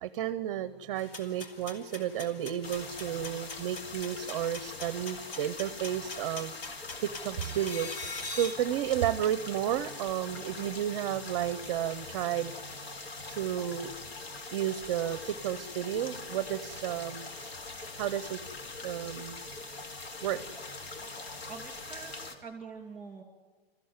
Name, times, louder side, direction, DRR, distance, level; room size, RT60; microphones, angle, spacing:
voice 1, 0.0-6.5 7.0-7.9 8.3-12.6 13.3-13.9 14.5-17.3 18.0-18.4 18.8-19.4 20.2-20.4, right 11 dB, 30° right, 14 dB, 0.6 m, -32 dB
sound 1, 0.9-8.5, left 3 dB, 65° left, 3.4 m, -44 dB
sound 2, 2.6-22.3, left 3 dB, 80° left, 3.0 m, -43 dB
voice 2, 21.5-23.2, right 5 dB, 5° right, 5 dB, 2.6 m, -45 dB
26.5 x 15.0 x 9.5 m, 1.4 s
supercardioid pair, 175°, 30 cm